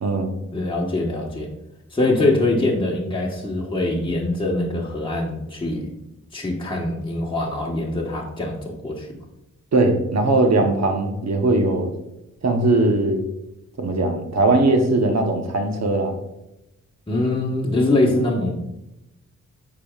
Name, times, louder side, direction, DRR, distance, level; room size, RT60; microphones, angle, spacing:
voice 1, 0.0-0.3 9.7-11.9 12.4-13.2 13.8-16.2, right 2 dB, 55° right, 4 dB, 1.0 m, -19 dB
voice 2, 0.5-1.5 1.9-5.9 6.3-9.1 17.1-18.7, left 2 dB, 15° left, -3 dB, 1.3 m, -23 dB
8.3 x 5.0 x 2.4 m, 0.90 s
cardioid pair, 50°, 32 cm